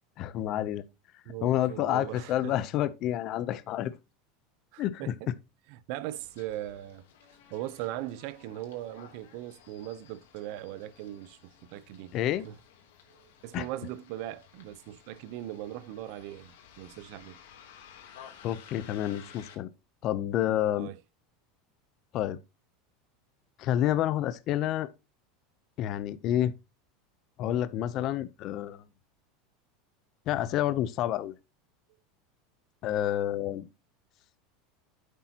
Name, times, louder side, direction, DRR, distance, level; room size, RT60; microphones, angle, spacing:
voice 1, 0.2-0.8 1.4-3.9 4.8-5.1 12.1-12.5 13.5-13.6 18.4-19.7 20.0-20.9 22.1-22.4 23.6-24.9 25.8-26.5 27.4-28.8 30.3-31.3 32.8-33.6, left 12 dB, 45° left, 0.6 m, -29 dB
voice 2, 1.3-2.6 4.7-5.3 5.7-7.0 7.5-12.2 12.4-12.5 13.1-17.4 20.8-21.0, right 13 dB, 60° right, 0.7 m, -39 dB
Bus, 6.1-19.5, left 8 dB, 90° left, 2.9 m, -55 dB
10.0 x 8.2 x 2.9 m
supercardioid pair, 145°, 0 cm